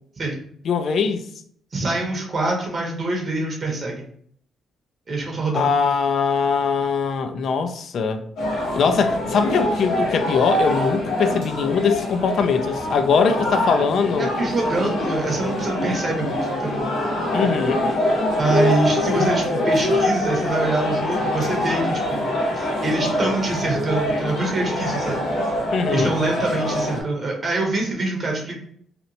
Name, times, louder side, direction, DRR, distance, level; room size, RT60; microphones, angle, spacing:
voice 1, 0.7-1.2 5.5-8.2 8.8-14.3 17.3-17.9 25.7-26.1, left 5 dB, 60° left, 0.3 m, -21 dB
voice 2, 1.7-4.1 5.1-5.7 14.2-16.8 18.4-25.2 25.9-28.5, right 2 dB, 40° right, 0.7 m, -25 dB
sound 1, 8.4-27.0, left 1 dB, 85° left, 0.7 m, -24 dB
2.8 x 2.0 x 2.6 m
cardioid pair, 90°, 0 cm